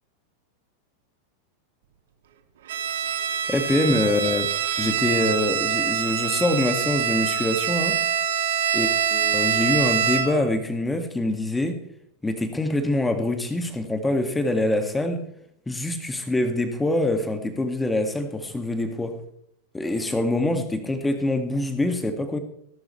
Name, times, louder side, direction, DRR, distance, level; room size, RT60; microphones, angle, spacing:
Bowed string instrument, 2.7-10.5, right 8 dB, 60° right, 1.6 m, -25 dB
voice 1, 3.5-4.5 4.8-8.0 8.7-11.8 12.2-15.2 15.7-19.2 19.7-22.4, left 1 dB, 10° left, 7 dB, 2.1 m, -25 dB
19.5 x 12.0 x 3.3 m, 0.71 s
figure-of-eight pair, 90°, 0 cm